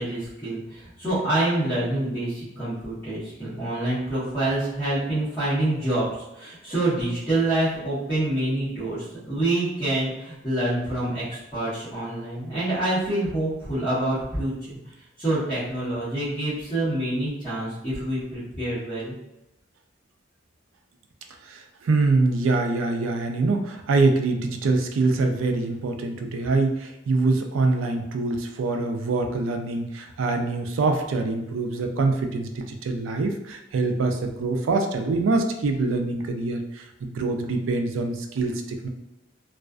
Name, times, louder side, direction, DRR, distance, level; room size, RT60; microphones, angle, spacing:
voice 1, 0.0-6.1 6.3-14.8 15.2-19.2, right 1 dB, 15° left, -16 dB, 1.0 m, -26 dB
voice 2, 21.5-38.9, right 3 dB, 80° right, 5 dB, 0.4 m, -24 dB
2.4 x 2.3 x 2.3 m, 0.92 s
head